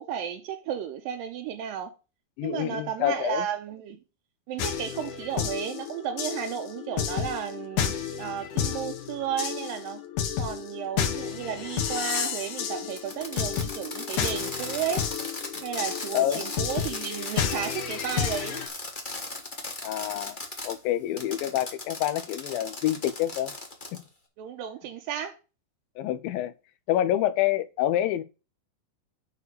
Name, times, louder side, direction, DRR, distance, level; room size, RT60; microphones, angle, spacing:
voice 1, 0.0-1.9 2.4-4.0 4.5-10.0 10.4-15.1 15.6-18.6 24.4-25.4, right 9 dB, 75° right, 2.4 m, -33 dB
voice 2, 2.4-3.5 16.1-16.4 19.8-23.5 26.0-26.5 26.9-28.2, left 12 dB, 80° left, 2.4 m, -27 dB
sound 1, 4.6-18.7, left 8 dB, 65° left, 2.5 m, -31 dB
Fireworks, 12.9-20.7 21.2-24.0, left 2 dB, 45° left, 0.6 m, -37 dB
8.4 x 4.8 x 6.6 m
omnidirectional pair, 4.2 m